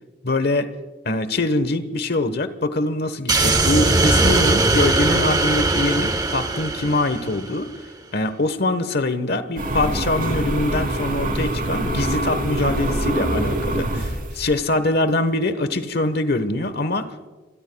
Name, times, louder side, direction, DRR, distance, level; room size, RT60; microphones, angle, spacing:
voice 1, 0.2-0.7 1.0-7.7 8.1-17.3, left 2 dB, 50° left, 11 dB, 1.2 m, -23 dB
sound 1, 3.3-7.6, right 2 dB, 20° right, 0.9 m, -20 dB
sound 2, 9.6-14.6, right 1 dB, 45° right, 3.6 m, -24 dB
27.5 x 22.5 x 2.3 m, 1.3 s
head